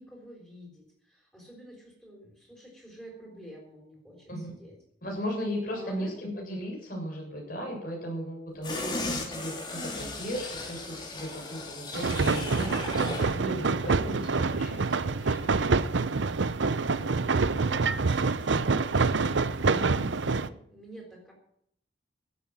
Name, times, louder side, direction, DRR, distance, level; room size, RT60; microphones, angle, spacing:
voice 1, 0.0-4.8 5.7-6.2 15.9-16.1 16.9-21.3, equal, 5° left, -2 dB, 5.7 m, -48 dB
voice 2, 5.0-15.7 19.7-20.5, equal, 50° left, -1 dB, 7.7 m, -37 dB
sound 1, 8.6-13.4 13.7-13.9, left 2 dB, 25° left, 3.3 m, -36 dB
sound 2, 11.9-20.5, right 4 dB, 85° right, 0.7 m, -26 dB
16.5 x 8.8 x 7.8 m, 0.69 s
head